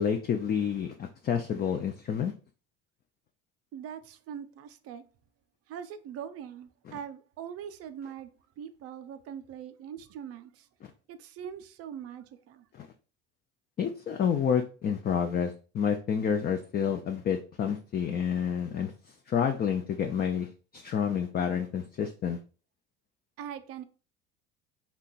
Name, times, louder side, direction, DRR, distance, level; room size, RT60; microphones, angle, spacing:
voice 1, 0.0-2.3 6.9-7.0 12.8-12.9 13.8-18.9 19.3-22.4, left 7 dB, 30° left, 0.4 m, -29 dB
voice 2, 3.7-5.0 5.7-8.3 8.6-10.7 11.1-12.7 23.4-23.8, right 8 dB, 50° right, 0.5 m, -42 dB
2.9 x 2.2 x 4.0 m
hypercardioid pair, 70°, 30 cm